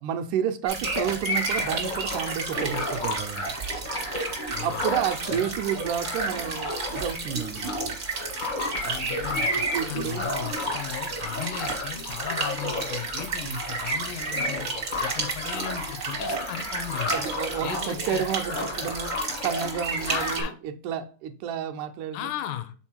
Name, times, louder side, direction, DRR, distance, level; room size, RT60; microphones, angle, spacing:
voice 1, 0.0-3.5 4.6-7.8 9.2-9.3 9.7-10.2 13.4-13.6 17.1-19.1 19.4-22.3, right 9 dB, 80° right, 2.0 m, -30 dB
sound 1, 0.7-20.4, right 3 dB, 60° right, 0.9 m, -33 dB
sound 2, 0.8-20.5, left 1 dB, 50° left, 0.5 m, -33 dB
voice 2, 4.5-5.0 5.3-5.6 8.8-14.7 15.0-17.3 17.6-18.2 18.6-18.7 20.1-20.5 22.1-22.7, left 11 dB, 85° left, 2.2 m, -36 dB
6.1 x 4.0 x 4.4 m
omnidirectional pair, 3.7 m